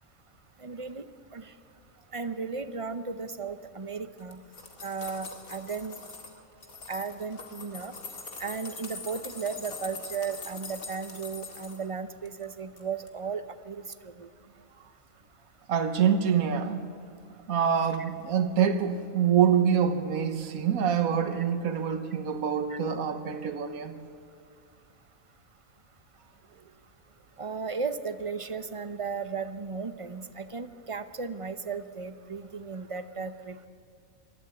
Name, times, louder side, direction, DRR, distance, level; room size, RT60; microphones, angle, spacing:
voice 1, 0.6-1.0 1.3-1.5 2.1-4.4 4.8-6.0 6.9-7.9 8.4-14.3 21.4-21.5 22.7-22.8 27.4-33.6, right 5 dB, 30° right, 11 dB, 0.6 m, -35 dB
sound 1, 4.2-6.3 6.6-11.8 12.3-12.8 13.1-13.2, left 4 dB, 80° left, 2.5 m, -43 dB
voice 2, 15.7-16.9 17.5-23.9, right 7 dB, 80° right, 8 dB, 1.5 m, -25 dB
20.5 x 14.0 x 9.4 m, 2.4 s
omnidirectional pair, 1.5 m